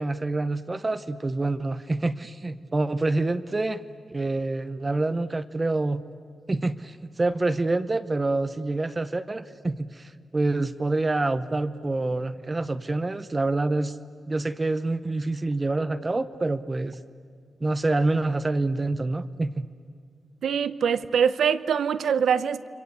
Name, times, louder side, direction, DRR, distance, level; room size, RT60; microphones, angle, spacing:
voice 1, 0.0-3.8 4.1-6.0 6.5-14.0 14.3-17.0 17.6-19.7, right 2 dB, 25° right, 11 dB, 0.7 m, -27 dB
voice 2, 20.4-22.7, right 7 dB, 85° right, 14 dB, 0.8 m, -23 dB
29.5 x 23.5 x 8.4 m, 2.1 s
wide cardioid pair, 120°, 0 cm